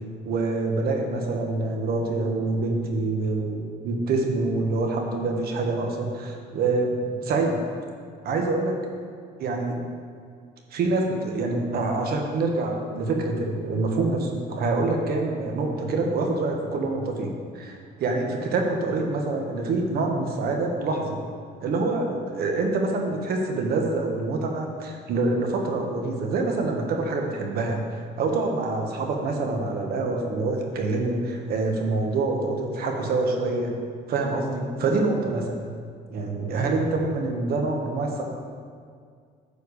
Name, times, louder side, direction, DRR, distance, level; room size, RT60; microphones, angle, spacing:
voice 1, 0.2-7.6 8.2-8.8 9.4-9.8 10.7-21.2 21.6-33.7 34.1-35.7 36.1-38.2, right 3 dB, 65° right, 2 dB, 1.4 m, -26 dB
9.8 x 4.6 x 6.6 m, 2.1 s
cardioid pair, 110°, 17 cm